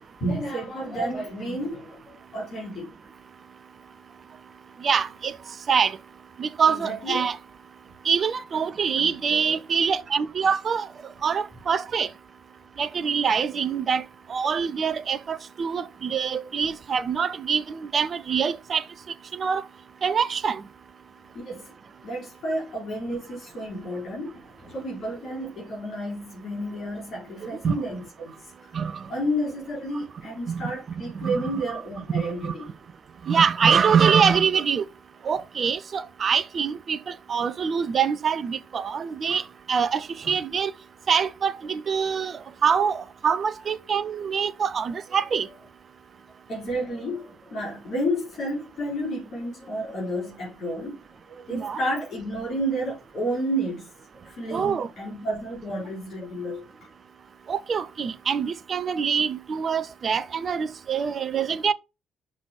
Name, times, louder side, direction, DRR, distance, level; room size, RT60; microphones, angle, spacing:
voice 1, 0.2-2.0 2.3-2.9 6.7-7.2 9.0-9.5 21.5-21.7 22.0-28.4 29.1-32.7 46.5-51.0 51.3-53.9 54.2-56.6, equal, 50° left, 4.1 m, -31 dB
voice 2, 4.8-5.4 5.7-6.0 6.4-7.4 8.1-10.9 11.2-12.1 12.8-14.0 14.3-18.8 19.3-19.6 20.0-20.6 27.6-27.7 28.7-29.0 30.5-30.6 31.1-31.8 32.1-32.5 33.3-34.8 35.3-39.4 39.7-40.7 41.1-45.5 51.5-51.8 54.5-54.9 57.5-61.7, right 6 dB, 45° right, 0.6 m, -24 dB
6.1 x 5.9 x 4.8 m
figure-of-eight pair, 45°, 0 cm